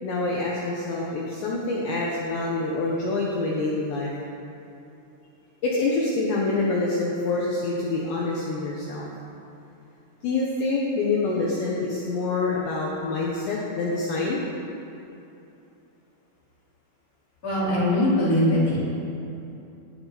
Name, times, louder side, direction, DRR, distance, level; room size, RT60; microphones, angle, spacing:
voice 1, 0.0-4.1 5.6-9.1 10.2-14.4, left 3 dB, 70° left, -4 dB, 3.2 m, -26 dB
voice 2, 17.4-18.8, left 1 dB, 15° left, -8 dB, 4.1 m, -21 dB
19.0 x 13.5 x 4.2 m, 2.8 s
omnidirectional pair, 5.9 m